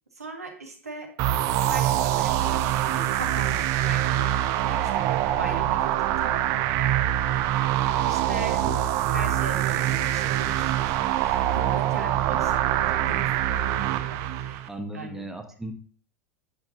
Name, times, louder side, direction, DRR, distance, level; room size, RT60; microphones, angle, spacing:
voice 1, 0.1-1.1 1.5-6.7 7.4-15.3, right 3 dB, 80° right, 3 dB, 2.0 m, -39 dB
sound 1, 1.2-14.7, right 12 dB, 45° right, 0.7 m, -24 dB
voice 2, 14.7-15.7, right 1 dB, 5° right, 4 dB, 1.4 m, -36 dB
10.5 x 8.9 x 2.9 m, 0.43 s
figure-of-eight pair, 85°, 8 cm